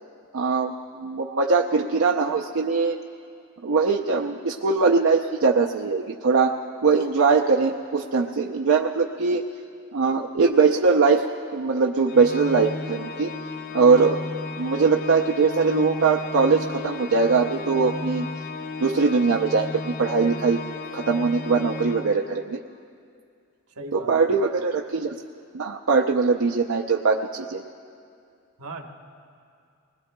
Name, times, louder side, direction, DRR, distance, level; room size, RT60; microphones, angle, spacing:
voice 1, 0.3-3.0 3.6-6.6 6.8-9.5 9.9-11.2 11.5-13.3 13.7-14.2 14.6-18.3 18.8-19.7 20.0-20.6 20.9-22.6 23.9-25.1 25.5-27.6, right 4 dB, 70° right, 0 dB, 0.6 m, -21 dB
Organ, 12.1-22.7, left 4 dB, 45° left, 0.3 m, -35 dB
voice 2, 23.7-24.3 28.6-28.9, right 2 dB, 90° right, 3 dB, 1.2 m, -38 dB
24.0 x 20.5 x 2.2 m, 2.4 s
head